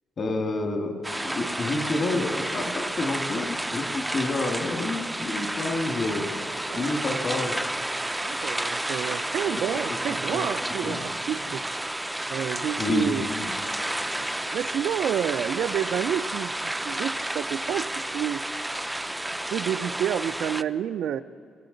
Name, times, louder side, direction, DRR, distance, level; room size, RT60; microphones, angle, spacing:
voice 1, 0.2-6.3 6.8-7.6 9.5-10.5 10.8-11.0 12.8-13.5, left 2 dB, 45° left, 4 dB, 1.8 m, -29 dB
sound 1, 1.0-20.6, right 1 dB, 10° right, 0.4 m, -31 dB
voice 2, 8.2-11.7 12.3-13.3 14.2-18.4 19.5-21.2, right 9 dB, 75° right, 11 dB, 0.4 m, -29 dB
21.5 x 10.0 x 3.9 m, 2.3 s
cardioid pair, 90°, 0 cm